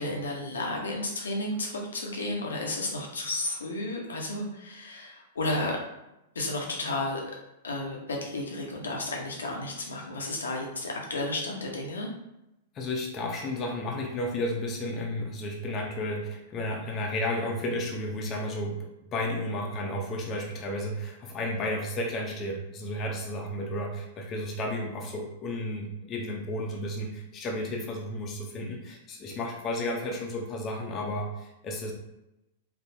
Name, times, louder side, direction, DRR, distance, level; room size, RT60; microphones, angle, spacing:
voice 1, 0.0-5.8 6.3-7.2 7.6-12.1, left 2 dB, 75° left, 0 dB, 1.0 m, -32 dB
voice 2, 12.7-18.8 19.1-31.9, left 1 dB, 30° left, 0 dB, 0.9 m, -32 dB
4.6 x 3.0 x 2.8 m, 0.90 s
figure-of-eight pair, 100°, 0 cm